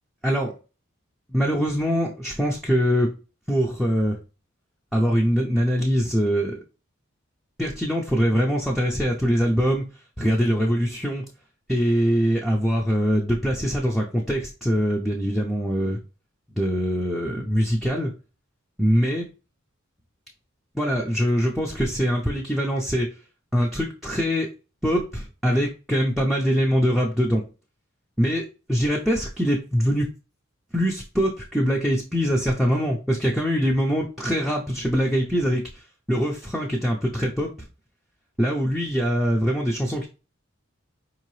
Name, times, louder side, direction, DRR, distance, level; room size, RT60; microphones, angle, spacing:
voice 1, 0.2-0.5 1.3-3.1 3.5-4.2 4.9-6.6 7.6-9.9 10.2-11.2 11.7-16.0 16.5-18.1 18.8-19.3 20.7-23.1 23.5-24.5 24.8-27.4 28.2-30.1 30.7-37.7 38.4-40.1, equal, ahead, -2 dB, 0.5 m, -23 dB
4.6 x 2.8 x 3.1 m, 0.33 s
head